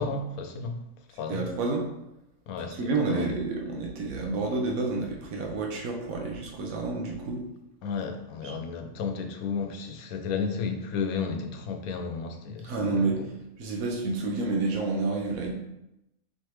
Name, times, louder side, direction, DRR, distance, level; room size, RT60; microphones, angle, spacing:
voice 1, 0.0-1.5 2.5-3.4 7.8-13.3, left 5 dB, 85° left, 1.0 m, -33 dB
voice 2, 1.3-1.9 2.8-7.4 12.6-13.2 13.6-15.5, right 3 dB, 75° right, 1.2 m, -29 dB
4.7 x 3.3 x 3.0 m
omnidirectional pair, 1.5 m